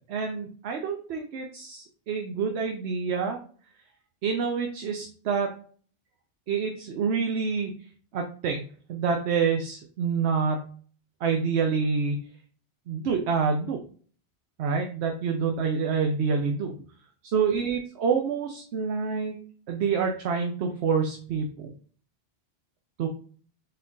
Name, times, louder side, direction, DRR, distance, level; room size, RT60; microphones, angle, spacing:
voice 1, 0.1-3.4 4.2-5.5 6.5-7.7 8.1-8.6 8.9-10.6 11.2-12.2 12.9-13.8 14.6-16.8 17.3-19.4 19.7-21.7 23.0-23.1, right 5 dB, 85° right, 3 dB, 0.9 m, -27 dB
4.5 x 3.7 x 2.3 m, 0.44 s
omnidirectional pair, 1.1 m